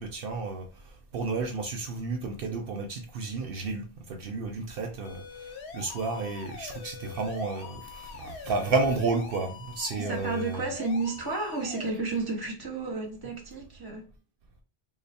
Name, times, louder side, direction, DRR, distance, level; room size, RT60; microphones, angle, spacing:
voice 1, 0.0-10.6, right 3 dB, 65° right, 0.7 m, -32 dB
sound 1, 5.0-11.9, left 6 dB, 80° left, 0.9 m, -44 dB
voice 2, 10.0-14.1, right 3 dB, 25° right, 0.7 m, -32 dB
3.2 x 2.0 x 4.0 m
omnidirectional pair, 1.1 m